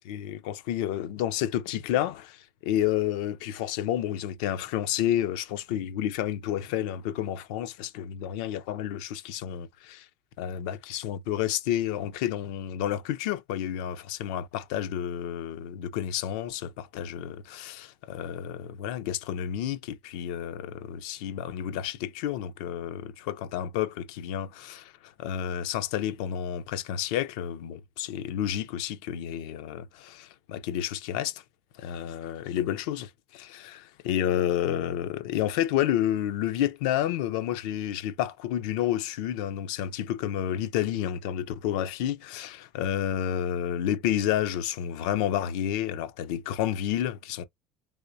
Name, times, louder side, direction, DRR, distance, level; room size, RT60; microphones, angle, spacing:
voice 1, 0.1-10.1 10.4-31.4 31.8-47.4, left 11 dB, 75° left, 0.6 m, -30 dB
3.5 x 3.0 x 2.7 m
hypercardioid pair, 85°, 4 cm